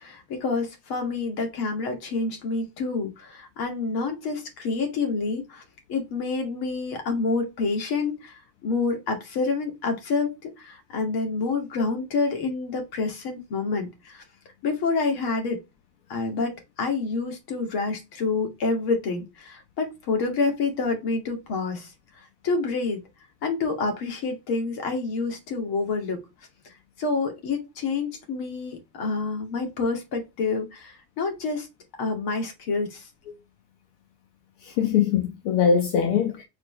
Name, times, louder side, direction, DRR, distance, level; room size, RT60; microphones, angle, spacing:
voice 1, 0.0-5.6 5.9-14.2 14.6-15.6 16.1-21.9 22.4-23.0 23.4-26.2 26.6-31.7 32.0-33.1, left 4 dB, 50° left, 2.5 m, -28 dB
voice 2, 34.6-36.4, left 7 dB, 70° left, 1.3 m, -22 dB
6.0 x 4.7 x 3.3 m
cardioid pair, 145°, 47 cm